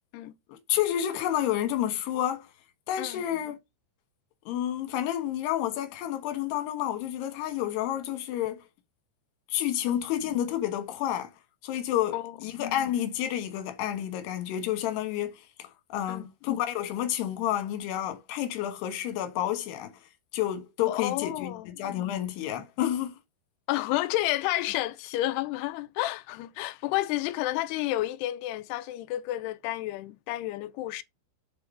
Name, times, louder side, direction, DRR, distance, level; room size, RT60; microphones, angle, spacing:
voice 1, 0.5-2.5 2.9-3.6 4.5-8.6 9.5-11.3 11.6-19.9 20.3-23.1, left 11 dB, 70° left, 3.1 m, -30 dB
voice 2, 20.9-21.7 23.7-31.0, left 16 dB, 85° left, 2.3 m, -30 dB
7.4 x 4.7 x 5.4 m
omnidirectional pair, 5.5 m